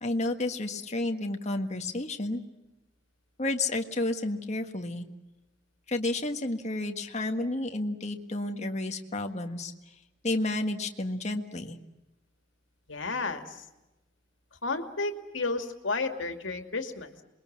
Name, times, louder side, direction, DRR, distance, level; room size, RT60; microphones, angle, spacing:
voice 1, 0.0-2.4 3.4-5.1 5.9-9.7 10.2-11.8, left 2 dB, 35° left, 5 dB, 1.6 m, -31 dB
voice 2, 12.9-13.6 14.6-17.2, left 3 dB, 80° left, 6 dB, 2.4 m, -32 dB
27.0 x 22.0 x 7.4 m, 1.0 s
head